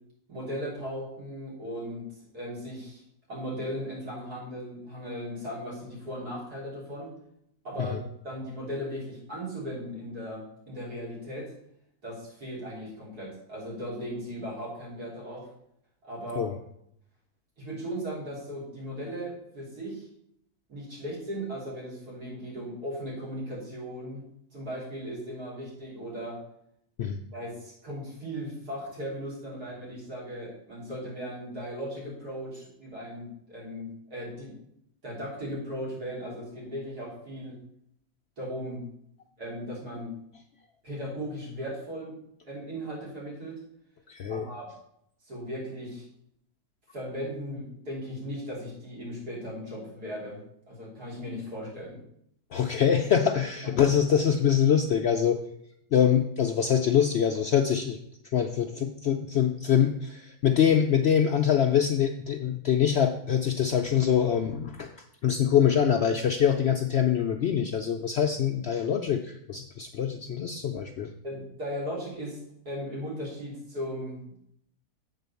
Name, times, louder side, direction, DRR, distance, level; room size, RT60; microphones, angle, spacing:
voice 1, 0.3-2.1 2.3-3.0 3.3-7.1 7.6-8.0 8.2-11.5 12.0-15.5 16.0-16.5 17.6-20.1 20.7-24.2 24.5-26.4 27.3-34.5 35.0-37.6 38.4-38.8 39.4-40.1 40.8-42.2 42.4-43.6 44.3-44.7 45.2-46.0 46.9-50.4 50.7-52.0 53.6-53.8 71.2-72.4 72.7-74.4, equal, 85° right, -6 dB, 3.8 m, -37 dB
voice 2, 44.1-44.5 52.5-55.4 55.9-58.0 58.3-64.9 65.2-71.1, left 8 dB, 70° left, 5 dB, 0.6 m, -24 dB
7.7 x 4.1 x 6.9 m, 0.73 s
omnidirectional pair, 1.6 m